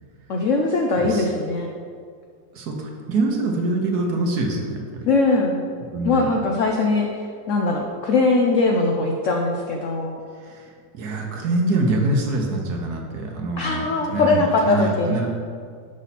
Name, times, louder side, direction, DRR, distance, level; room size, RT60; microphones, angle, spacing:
voice 1, 0.3-1.7 5.1-5.6 6.0-7.1 7.5-10.2 13.6-15.2, left 3 dB, 75° left, 1 dB, 0.7 m, -21 dB
voice 2, 2.5-5.1 5.9-6.3 10.4-15.3, right 2 dB, 65° right, 1 dB, 1.3 m, -25 dB
6.2 x 5.6 x 4.1 m, 2.1 s
omnidirectional pair, 2.0 m